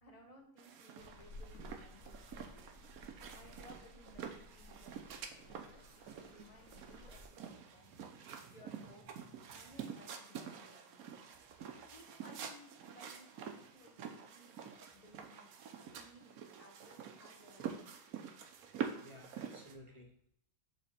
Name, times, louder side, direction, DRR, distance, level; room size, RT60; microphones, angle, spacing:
voice 1, 0.0-2.8 3.3-8.0 8.2-9.1 9.5-11.2 11.7-15.6 15.9-18.0, left 1 dB, 25° left, 0 dB, 1.1 m, -61 dB
sound 1, 0.6-19.7, right 7 dB, 85° right, 1.2 m, -48 dB
sound 2, 1.0-7.3, left 1 dB, 80° left, 1.4 m, -56 dB
voice 2, 7.9-8.6 9.0-9.4 19.0-20.3, equal, 25° right, 0 dB, 1.0 m, -58 dB
7.4 x 3.2 x 4.2 m, 0.71 s
omnidirectional pair, 1.5 m